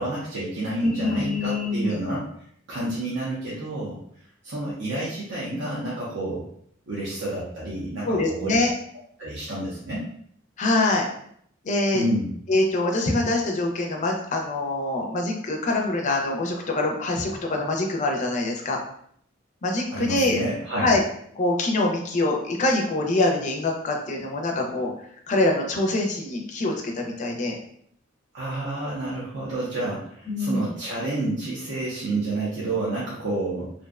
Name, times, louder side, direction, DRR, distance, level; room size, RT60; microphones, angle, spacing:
voice 1, 0.0-2.3 2.7-6.4 6.9-8.6 9.2-10.1 11.9-12.3 19.9-20.9 28.3-33.7, right 1 dB, 60° right, -6 dB, 0.5 m, -29 dB
voice 2, 0.8-2.0 8.0-8.7 10.6-11.1 11.6-12.0 12.5-18.8 19.6-20.4 20.8-21.0 21.4-24.9 25.3-27.6 30.3-30.7, left 2 dB, 35° left, 1 dB, 0.4 m, -24 dB
2.5 x 2.1 x 2.3 m, 0.66 s
head